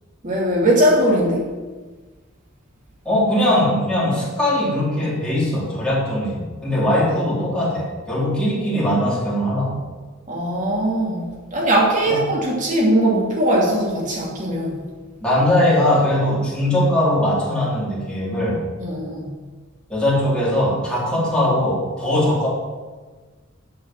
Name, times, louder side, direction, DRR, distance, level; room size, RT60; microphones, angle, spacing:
voice 1, 0.2-1.5 10.3-14.8 18.8-19.3, right 1 dB, 40° right, -3 dB, 2.8 m, -20 dB
voice 2, 3.0-9.8 12.1-12.3 15.2-18.6 19.9-22.5, left 1 dB, 5° left, -8 dB, 4.0 m, -20 dB
7.9 x 7.7 x 7.3 m, 1.4 s
head